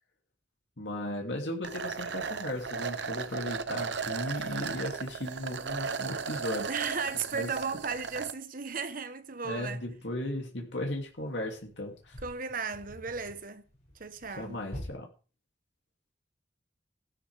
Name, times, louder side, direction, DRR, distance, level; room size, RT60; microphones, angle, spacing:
voice 1, 0.8-6.7 7.3-7.5 9.4-12.2 14.4-15.1, left 1 dB, 85° left, 2.9 m, -36 dB
sound 1, 1.6-8.3, right 5 dB, 75° right, 0.9 m, -36 dB
voice 2, 6.7-9.8 12.2-13.6 14.0-14.6, right 5 dB, 50° right, 1.2 m, -35 dB
sound 2, 8.9-9.0 9.8-10.0 10.8-14.9, equal, 40° left, 7.8 m, -47 dB
15.5 x 12.5 x 3.6 m
head